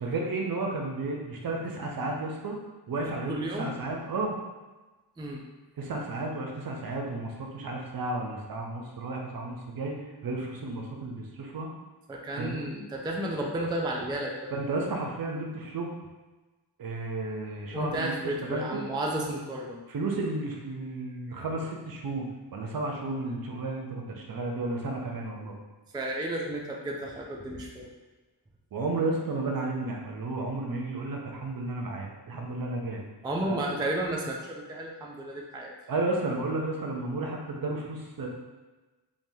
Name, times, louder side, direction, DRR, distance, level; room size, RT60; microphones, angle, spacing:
voice 1, 0.0-2.6 2.9-4.3 5.8-10.0 10.2-11.7 12.3-12.7 14.5-16.0 16.8-18.8 19.9-25.5 28.7-33.0 33.4-33.6 35.9-38.3, right 2 dB, 55° right, 0 dB, 0.6 m, -32 dB
voice 2, 3.3-3.7 5.2-5.4 12.1-14.3 17.7-19.8 25.9-27.9 33.2-35.7, right 1 dB, 10° right, -1 dB, 0.4 m, -32 dB
3.1 x 2.2 x 2.7 m, 1.2 s
cardioid pair, 60°, 43 cm